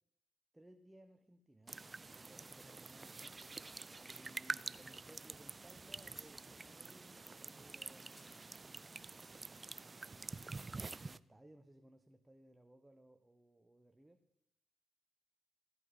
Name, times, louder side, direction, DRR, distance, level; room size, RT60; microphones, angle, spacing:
voice 1, 0.5-3.4 4.0-8.5 9.8-10.5 10.9-14.2, right 1 dB, 10° right, 6 dB, 0.8 m, -63 dB
sound 1, 1.6-2.5 2.8-3.7 4.7-4.8 5.7-5.8 6.0-6.3 7.9-8.8 10.3-10.4, left 1 dB, 25° left, 2.5 m, -68 dB
sound 2, 1.7-11.2, right 3 dB, 30° right, 0.4 m, -47 dB
14.5 x 8.3 x 5.5 m, 0.79 s
cardioid pair, 85°, 0 cm